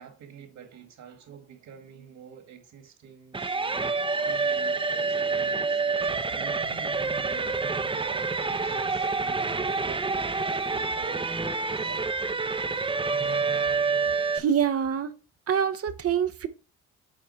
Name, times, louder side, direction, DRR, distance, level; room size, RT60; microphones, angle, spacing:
voice 1, 0.0-10.2 10.4-11.3 11.5-11.9, right 7 dB, 70° right, 2.1 m, -48 dB
sound 1, 3.3-14.4, right 4 dB, 15° right, 0.8 m, -27 dB
voice 2, 14.1-15.1 15.5-16.5, right 8 dB, 50° right, 0.8 m, -27 dB
8.6 x 4.2 x 4.6 m
cardioid pair, 90°, 30 cm